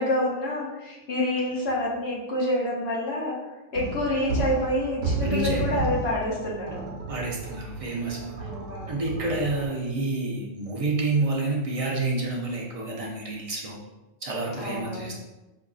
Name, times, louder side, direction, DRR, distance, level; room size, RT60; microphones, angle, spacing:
voice 1, 0.0-3.4 3.7-6.8 8.4-9.0 14.5-15.1, left 1 dB, 60° left, -4 dB, 1.0 m, -27 dB
sound 1, 3.7-9.7, right 3 dB, 85° right, 1.0 m, -32 dB
voice 2, 5.2-5.6 7.1-8.5 8.9-13.8 14.2-15.1, right 2 dB, 45° right, -2 dB, 0.4 m, -29 dB
4.5 x 2.5 x 2.3 m, 1.1 s
omnidirectional pair, 1.3 m